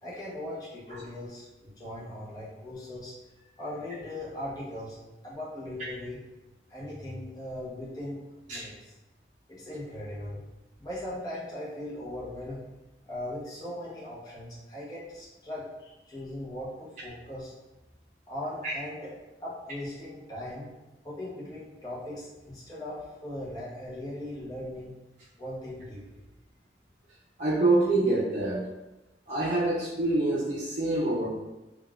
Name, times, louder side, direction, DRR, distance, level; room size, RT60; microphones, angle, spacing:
voice 1, 0.0-5.0 5.2-6.2 6.7-8.2 8.4-9.0 9.5-10.4 10.8-12.6 13.1-17.5 18.3-19.1 19.4-20.7 21.0-24.9 25.4-26.2, left 1 dB, 20° left, -7 dB, 0.8 m, -39 dB
voice 2, 27.4-28.7 29.3-31.3, right 2 dB, 45° right, -9 dB, 0.6 m, -26 dB
3.7 x 2.3 x 2.3 m, 1.0 s
head